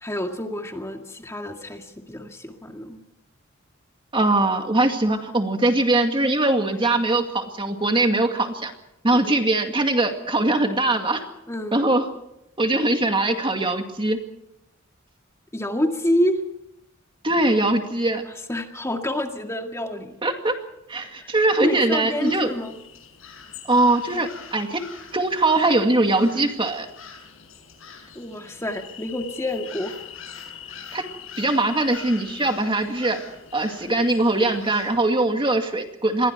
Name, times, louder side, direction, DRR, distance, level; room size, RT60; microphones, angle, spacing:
voice 1, 0.0-3.0 9.1-9.3 11.5-11.8 15.5-16.4 18.3-20.1 21.2-21.3 21.6-22.8 28.1-30.0, left 1 dB, 15° left, 3 dB, 2.1 m, -28 dB
voice 2, 4.1-8.7 9.0-11.2 11.7-12.1 12.6-14.2 17.2-18.2 20.2-20.6 20.9-22.5 23.7-24.8 25.1-26.9 30.9-31.1 31.4-33.2 33.5-36.3, right 2 dB, 25° right, 5 dB, 2.2 m, -21 dB
sound 1, 22.1-35.0, left 7 dB, 65° left, 7.2 m, -43 dB
28.0 x 22.5 x 4.6 m, 0.82 s
head